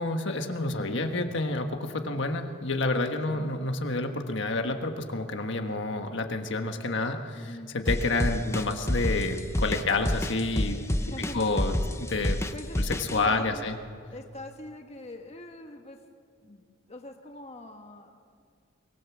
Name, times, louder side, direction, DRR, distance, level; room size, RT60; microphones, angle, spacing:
voice 1, 0.0-11.0 11.3-12.4 12.8-13.7, left 2 dB, 65° left, 5 dB, 1.5 m, -29 dB
voice 2, 0.7-1.1 2.0-2.2 3.3-3.4 7.3-7.8 11.0-11.4 12.5-13.7 14.1-16.0 16.4-18.2, left 1 dB, 35° left, 4 dB, 1.3 m, -44 dB
sound 1, 7.9-13.2, left 1 dB, 15° left, 0.8 m, -28 dB
23.5 x 20.5 x 7.3 m, 2.2 s
head